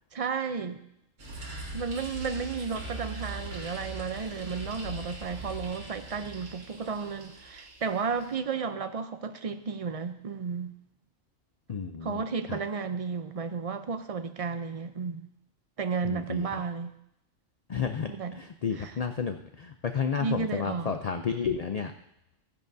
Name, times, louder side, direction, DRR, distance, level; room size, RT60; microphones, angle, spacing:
voice 1, 0.1-0.8 1.7-10.7 12.0-15.2 15.8-16.9 18.1-18.4 18.8-18.9 20.2-20.9, right 5 dB, 45° right, 9 dB, 0.4 m, -33 dB
sound 1, 1.2-8.3, right 2 dB, 70° right, 2.1 m, -41 dB
voice 2, 11.7-12.2 12.5-12.6 16.0-16.6 17.7-21.9, left 6 dB, 70° left, 7 dB, 0.3 m, -32 dB
15.0 x 10.5 x 2.7 m, 0.80 s
omnidirectional pair, 1.3 m